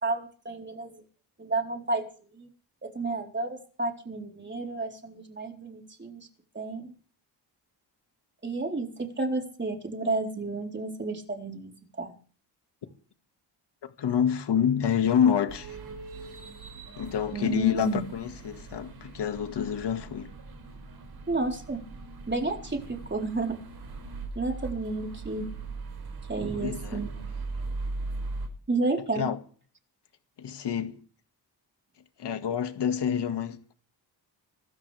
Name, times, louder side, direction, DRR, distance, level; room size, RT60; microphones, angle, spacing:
voice 1, 0.0-1.0 1.4-2.1 2.3-2.5 2.8-6.3 6.5-6.9 8.4-8.9 9.2-12.2 17.3-18.0 21.3-21.8 22.3-23.6 24.4-25.5 26.3-27.1 28.7-29.3, right 2 dB, 25° right, 4.1 m, -31 dB
voice 2, 14.0-15.8 17.0-20.3 26.5-27.0 29.2-29.4 30.4-31.0 32.2-33.7, left 8 dB, 70° left, 2.0 m, -27 dB
sound 1, 15.5-28.5, right 3 dB, 60° right, 6.1 m, -40 dB
26.0 x 13.5 x 3.5 m
cardioid pair, 100°, 43 cm